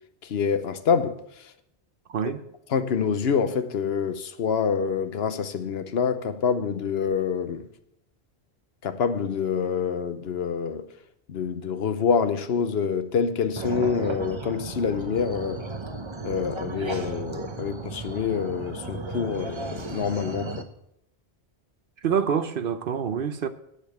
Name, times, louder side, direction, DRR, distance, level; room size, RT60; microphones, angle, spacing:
voice 1, 0.2-1.2 2.2-2.3 2.7-7.7 8.8-10.9 11.3-15.6 16.2-20.7, left 6 dB, 70° left, 1.0 m, -26 dB
voice 2, 2.1-2.4 22.0-23.5, right 7 dB, 60° right, 0.8 m, -26 dB
sound 1, 13.6-20.6, right 3 dB, 30° right, 0.8 m, -35 dB
10.0 x 6.9 x 7.9 m
omnidirectional pair, 1.1 m